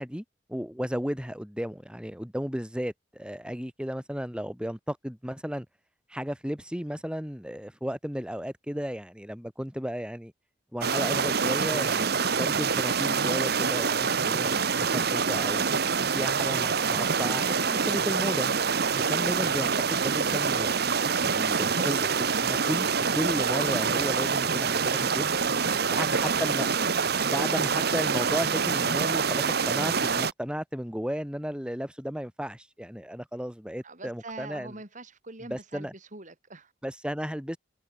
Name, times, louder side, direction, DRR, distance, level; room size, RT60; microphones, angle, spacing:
voice 1, 0.0-5.6 6.1-10.3 10.7-15.7 16.1-18.5 19.1-22.9 23.1-25.3 25.9-26.7 27.3-34.7 35.5-35.9 36.8-37.6, equal, 5° right, 6.8 m, -34 dB
sound 1, 10.8-30.3, right 5 dB, 60° right, 1.3 m, -26 dB
voice 2, 15.9-16.4 26.8-26.9 33.8-36.7, right 2 dB, 45° right, 6.2 m, -44 dB
head